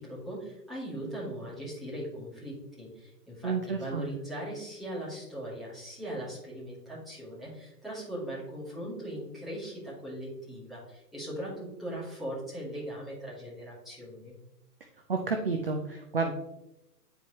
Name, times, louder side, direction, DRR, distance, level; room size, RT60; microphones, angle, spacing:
voice 1, 0.0-14.3, right 1 dB, ahead, -11 dB, 2.2 m, -39 dB
voice 2, 3.4-4.1 15.1-16.3, right 4 dB, 40° right, 4 dB, 0.4 m, -30 dB
10.0 x 4.6 x 3.0 m, 0.91 s
hypercardioid pair, 160°, 48 cm